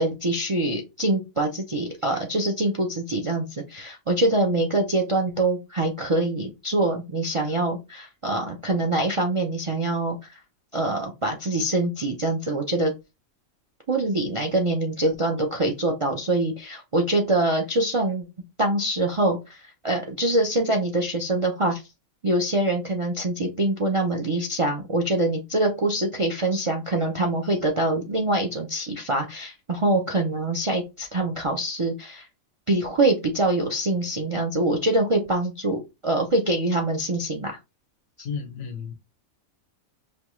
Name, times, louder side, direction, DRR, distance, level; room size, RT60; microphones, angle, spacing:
voice 1, 0.0-10.4 10.7-12.9 13.9-18.2 18.6-21.8 22.2-32.3 32.7-37.6 38.2-38.3, right 2 dB, 50° right, 0.3 m, -24 dB
voice 2, 38.2-38.9, left 6 dB, 80° left, 1.3 m, -32 dB
5.1 x 2.2 x 3.0 m
omnidirectional pair, 1.4 m